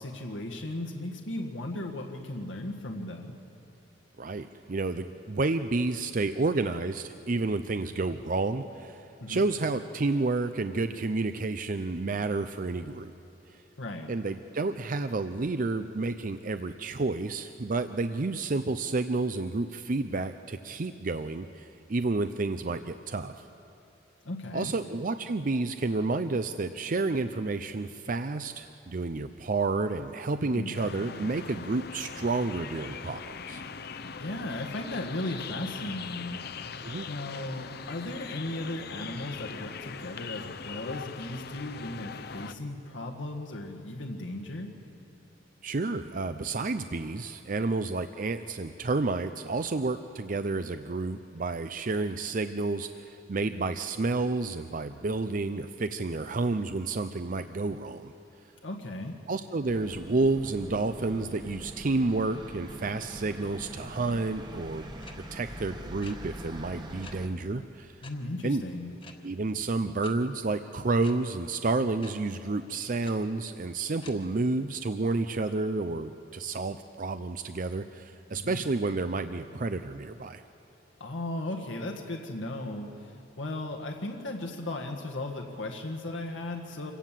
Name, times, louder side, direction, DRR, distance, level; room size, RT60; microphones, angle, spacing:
voice 1, 0.0-3.4 9.2-9.5 13.8-14.1 24.2-24.7 30.4-30.7 34.2-36.8 37.1-44.7 58.6-59.1 68.0-69.0 78.4-78.6 81.0-86.9, left 1 dB, 85° left, 1 dB, 1.7 m, -36 dB
voice 2, 4.2-13.1 13.5-13.6 14.1-23.5 24.5-33.6 36.8-37.1 45.6-58.1 59.3-64.9 65.3-68.0 68.4-68.6 69.2-80.4, right 3 dB, 45° right, 10 dB, 0.6 m, -30 dB
sound 1, 30.7-42.5, left 5 dB, 55° left, 0.8 m, -41 dB
sound 2, 59.6-67.3, equal, 25° right, 1.6 m, -43 dB
sound 3, 65.0-65.1 66.0-66.1 67.0-67.1 68.0-68.1 69.0-69.1 70.0-70.1 71.0-71.1 72.0-72.1 73.0-73.1 74.0-74.1, left 4 dB, 30° left, 1.5 m, -47 dB
26.5 x 17.0 x 7.5 m, 2.7 s
head